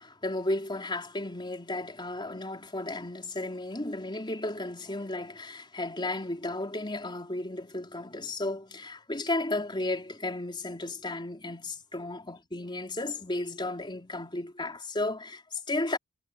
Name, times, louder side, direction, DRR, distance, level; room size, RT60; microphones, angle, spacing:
voice 1, 0.0-16.0, left 2 dB, 20° left, 4.0 m, -34 dB
head